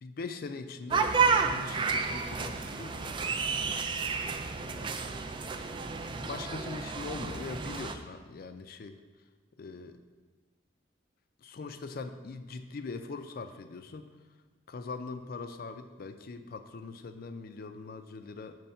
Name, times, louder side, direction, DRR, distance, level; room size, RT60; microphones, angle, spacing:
voice 1, 0.0-3.9 4.6-5.0 6.2-9.0 9.6-10.0 11.4-14.1 14.7-18.6, left 4 dB, 55° left, 9 dB, 0.4 m, -42 dB
sound 1, 0.9-7.9, right 5 dB, 25° right, 0.3 m, -31 dB
6.9 x 3.3 x 5.5 m, 1.3 s
head